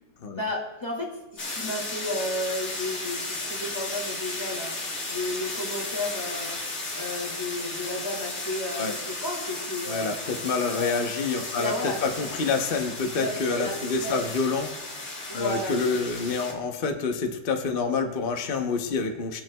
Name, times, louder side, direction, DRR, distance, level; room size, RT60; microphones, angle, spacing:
voice 1, 0.3-6.6 6.9-10.2 10.7-11.0 11.6-12.2 13.1-13.3 13.5-14.3 15.3-16.1, left 1 dB, 15° left, -3 dB, 2.2 m, -33 dB
sound 1, 1.4-16.5, left 2 dB, 35° left, 2.3 m, -34 dB
voice 2, 9.9-14.7 15.3-19.4, left 4 dB, 55° left, 4 dB, 0.6 m, -27 dB
21.0 x 9.1 x 2.3 m, 1.0 s
omnidirectional pair, 2.2 m